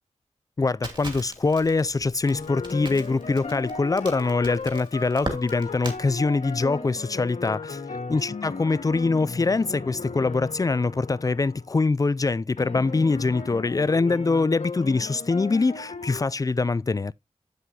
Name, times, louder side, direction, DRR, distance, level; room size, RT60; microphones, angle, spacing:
voice 1, 0.6-7.8 8.1-17.1, left 3 dB, 30° left, 0.3 m, -24 dB
Crackle, 0.8-6.0, right 1 dB, 40° right, 2.6 m, -38 dB
sound 1, 2.2-11.7 12.6-16.2, left 4 dB, 65° left, 1.6 m, -36 dB
8.1 x 7.8 x 2.7 m
wide cardioid pair, 80°, 13 cm